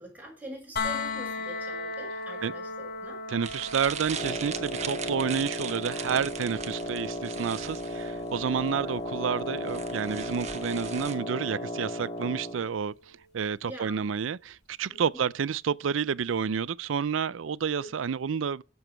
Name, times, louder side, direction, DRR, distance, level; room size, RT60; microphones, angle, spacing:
voice 1, 0.0-3.2 8.8-8.9 13.7-14.1 14.9-15.2 17.8-17.9, right 1 dB, 10° right, 6.4 m, -44 dB
sound 1, 0.8-12.6 14.5-14.6, left 3 dB, 55° left, 3.8 m, -39 dB
voice 2, 3.3-12.9 13.3-18.6, right 6 dB, 85° right, 0.5 m, -30 dB
sound 2, 3.4-11.2, right 7 dB, 35° right, 1.3 m, -40 dB
Wind instrument woodwind instrument, 4.1-12.7, left 1 dB, 30° left, 1.9 m, -35 dB
17.0 x 7.1 x 4.5 m
head